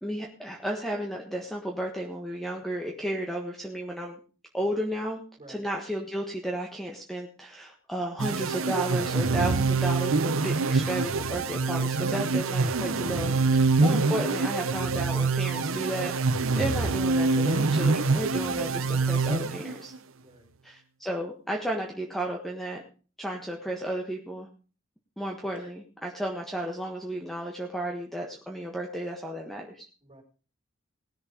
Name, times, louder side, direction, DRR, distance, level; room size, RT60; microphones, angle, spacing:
voice 1, 0.0-4.2 4.5-5.2 5.5-16.2 16.6-19.9 20.6-22.8 23.2-24.5 25.2-29.9, right 1 dB, ahead, 1 dB, 1.5 m, -33 dB
sound 1, 8.2-20.0, right 3 dB, 75° right, 0.8 m, -25 dB
voice 2, 20.2-20.5 25.6-25.7 30.0-30.2, right 2 dB, 25° right, 1 dB, 4.3 m, -52 dB
19.0 x 7.1 x 5.1 m, 0.38 s
head